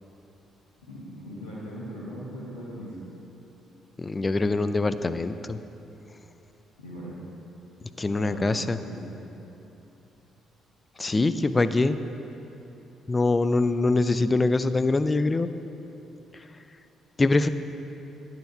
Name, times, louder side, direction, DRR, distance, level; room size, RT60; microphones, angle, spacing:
voice 1, 0.9-3.0 6.8-7.1 8.1-9.1, equal, 85° left, -10 dB, 1.3 m, -39 dB
voice 2, 4.0-5.6 8.0-8.8 11.0-12.0 13.1-15.5 17.2-17.5, left 3 dB, 25° left, 12 dB, 0.4 m, -23 dB
10.0 x 4.6 x 5.6 m, 3.0 s
figure-of-eight pair, 45°, 0 cm